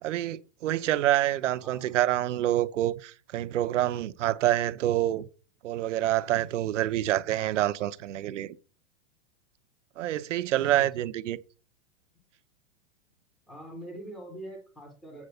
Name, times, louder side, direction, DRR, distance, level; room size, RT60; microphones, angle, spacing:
voice 1, 0.0-5.3 5.6-8.6 10.0-11.4, right 13 dB, 90° right, 0.8 m, -27 dB
voice 2, 1.6-2.0 10.6-10.9 13.5-15.2, right 1 dB, ahead, 0.4 m, -43 dB
8.6 x 4.2 x 6.6 m
supercardioid pair, 180°, 35 cm